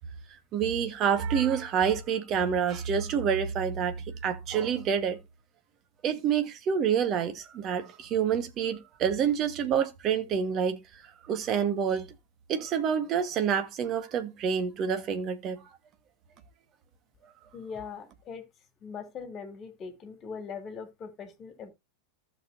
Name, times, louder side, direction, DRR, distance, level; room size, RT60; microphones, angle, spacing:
voice 1, 0.5-5.2 6.0-10.8 11.2-12.1 12.5-15.6, right 7 dB, 35° right, 1.4 m, -27 dB
voice 2, 17.5-18.5 18.8-21.7, left 5 dB, 30° left, 2.4 m, -41 dB
14.5 x 6.6 x 2.6 m
figure-of-eight pair, 90°, 0 cm